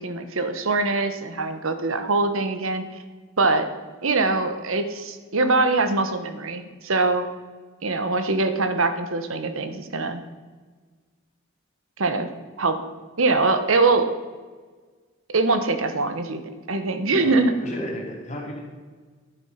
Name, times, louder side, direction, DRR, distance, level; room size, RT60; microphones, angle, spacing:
voice 1, 0.0-2.8 3.4-3.7 4.0-7.3 7.8-10.2 12.0-12.3 12.6-12.8 13.2-14.1 15.3-16.4 16.7-17.5, right 3 dB, 75° right, 9 dB, 1.1 m, -23 dB
voice 2, 17.1-18.6, equal, 35° left, -1 dB, 2.8 m, -33 dB
11.0 x 9.5 x 5.7 m, 1.4 s
head